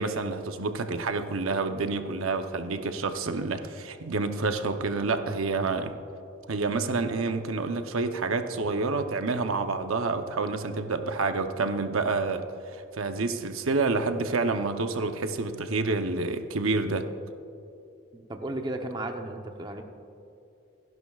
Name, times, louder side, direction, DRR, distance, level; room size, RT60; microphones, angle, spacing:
voice 1, 0.0-5.9 6.5-12.4 12.7-17.1, right 3 dB, 85° right, 7 dB, 0.8 m, -28 dB
voice 2, 18.1-19.8, right 1 dB, 20° right, 4 dB, 0.8 m, -34 dB
27.0 x 11.0 x 2.4 m, 2.7 s
head